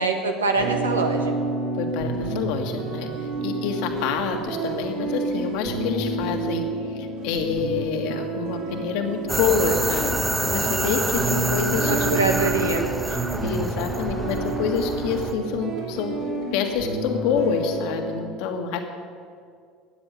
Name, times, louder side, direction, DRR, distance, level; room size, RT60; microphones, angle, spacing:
voice 1, 0.0-1.4 11.9-12.9, right 3 dB, 80° right, 4 dB, 1.6 m, -24 dB
sound 1, 0.5-18.2, right 3 dB, 60° right, 3.9 m, -30 dB
voice 2, 1.8-3.1 3.4-6.7 6.9-10.2 10.5-12.1 13.4-16.1 16.5-18.8, left 6 dB, 55° left, 5 dB, 1.8 m, -27 dB
sound 2, 9.3-15.3, right 2 dB, 10° right, 1.2 m, -27 dB
14.0 x 9.8 x 9.5 m, 2.2 s
figure-of-eight pair, 65°, 0 cm